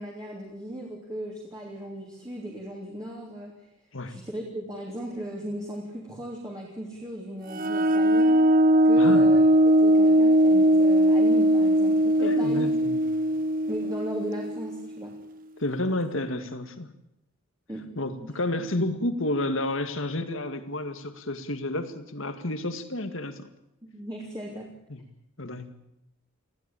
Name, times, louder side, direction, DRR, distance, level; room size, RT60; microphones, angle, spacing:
voice 1, 0.0-3.5 4.1-8.4 8.8-9.5 9.8-12.7 13.7-15.1 15.9-16.0 17.7-17.9 18.2-18.3 23.8-24.7, right 1 dB, 15° right, -2 dB, 3.3 m, -37 dB
sound 1, 7.5-14.9, right 1 dB, 40° right, 1.0 m, -20 dB
voice 2, 9.0-9.3 12.2-13.0 15.6-16.9 18.0-23.5 24.9-25.0 25.4-25.7, left 1 dB, 65° left, 9 dB, 2.0 m, -30 dB
20.0 x 15.0 x 9.0 m, 0.83 s
head